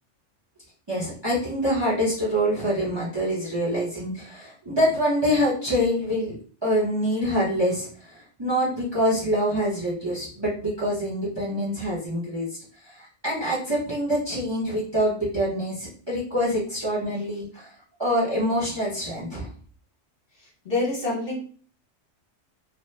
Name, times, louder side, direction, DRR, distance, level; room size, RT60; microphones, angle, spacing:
voice 1, 0.9-6.4 6.6-12.5 12.8-17.7 18.0-19.5, equal, 25° right, -6 dB, 0.8 m, -25 dB
voice 2, 20.6-21.4, left 2 dB, 50° left, -4 dB, 1.1 m, -26 dB
2.9 x 2.2 x 3.2 m, 0.43 s
omnidirectional pair, 1.2 m